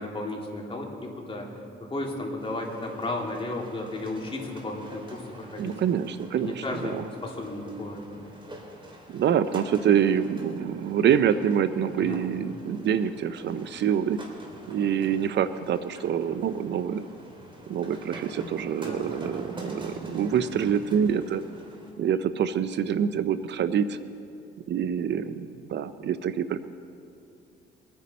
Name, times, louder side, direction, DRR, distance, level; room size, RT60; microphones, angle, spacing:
voice 1, 0.0-1.5 1.8-5.8 6.4-8.0 12.0-12.2 18.8-19.1, left 2 dB, 25° left, -1 dB, 2.7 m, -34 dB
sound 1, 2.4-21.9, right 1 dB, 25° right, 2.9 m, -46 dB
voice 2, 5.6-7.0 9.1-14.2 14.7-17.0 17.7-21.4 22.0-24.0 24.7-26.6, right 8 dB, 60° right, 13 dB, 0.6 m, -26 dB
22.5 x 9.6 x 4.2 m, 2.6 s
cardioid pair, 90°, 20 cm